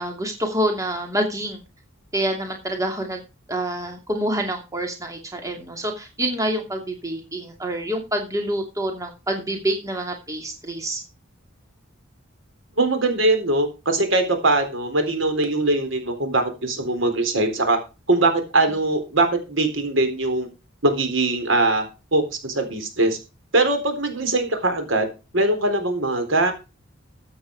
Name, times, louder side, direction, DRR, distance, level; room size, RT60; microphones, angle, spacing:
voice 1, 0.0-1.6 2.1-11.0, right 1 dB, 15° right, 3 dB, 2.6 m, -27 dB
voice 2, 12.8-17.8 18.1-20.5 20.8-21.8 22.1-23.2 23.5-25.1 25.3-26.5, right 2 dB, 75° right, 6 dB, 3.9 m, -21 dB
13.5 x 8.7 x 4.7 m, 0.29 s
head